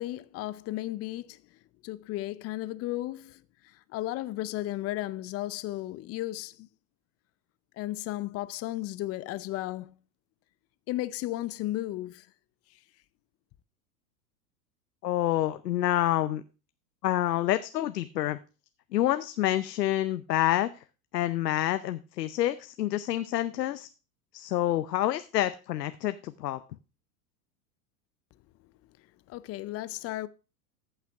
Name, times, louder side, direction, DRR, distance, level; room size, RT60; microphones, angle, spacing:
voice 1, 0.0-1.4 1.8-6.7 7.8-9.9 10.9-12.3 29.3-30.3, left 16 dB, 30° left, 0.6 m, -34 dB
voice 2, 15.0-16.4 17.0-18.4 18.9-20.8 21.1-23.9 24.3-26.6, left 13 dB, 80° left, 0.7 m, -28 dB
14.5 x 5.8 x 3.4 m
hypercardioid pair, 100°, 48 cm